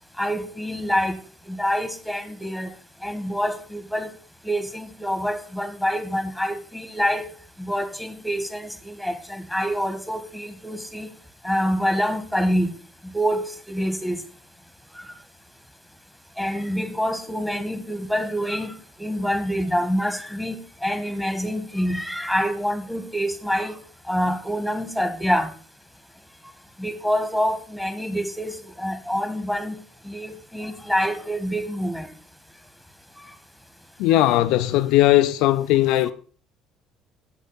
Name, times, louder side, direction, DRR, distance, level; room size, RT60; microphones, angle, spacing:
voice 1, 0.2-1.2 1.4-2.7 3.0-4.1 4.4-7.3 7.6-11.1 11.4-12.8 13.0-14.2 14.9-15.1 16.4-23.8 24.1-25.5 26.8-29.8 30.0-32.1, equal, ahead, 1.5 m, -26 dB
voice 2, 34.0-36.1, left 15 dB, 70° left, 0.4 m, -18 dB
8.3 x 6.8 x 5.6 m
hypercardioid pair, 60°, 0 cm